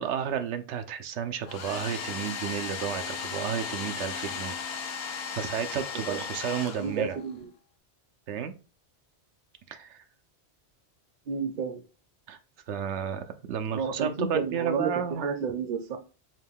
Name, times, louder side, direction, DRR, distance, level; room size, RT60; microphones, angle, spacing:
voice 1, 0.0-5.0 5.3-7.2 8.3-8.5 9.7-10.0 12.3-12.4 12.7-15.2, right 8 dB, 90° right, 8 dB, 0.9 m, -32 dB
Domestic sounds home sounds, 1.4-7.3, left 6 dB, 65° left, 0.8 m, -36 dB
voice 2, 6.8-7.5 11.3-11.8 13.7-14.9 15.2-16.0, right 5 dB, 50° right, 8 dB, 0.7 m, -31 dB
5.1 x 2.2 x 3.5 m, 0.33 s
omnidirectional pair, 1.1 m